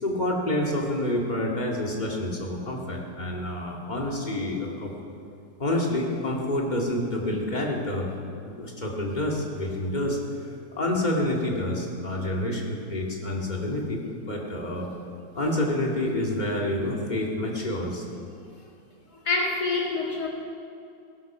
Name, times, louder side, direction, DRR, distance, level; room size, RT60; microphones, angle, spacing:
voice 1, 0.0-4.9 5.6-8.1 8.4-10.2 10.8-14.9 15.4-18.0, left 1 dB, 25° left, -1 dB, 2.2 m, -28 dB
voice 2, 19.1-20.3, left 3 dB, 55° left, -2 dB, 2.9 m, -26 dB
17.5 x 12.0 x 6.0 m, 2.5 s
omnidirectional pair, 2.0 m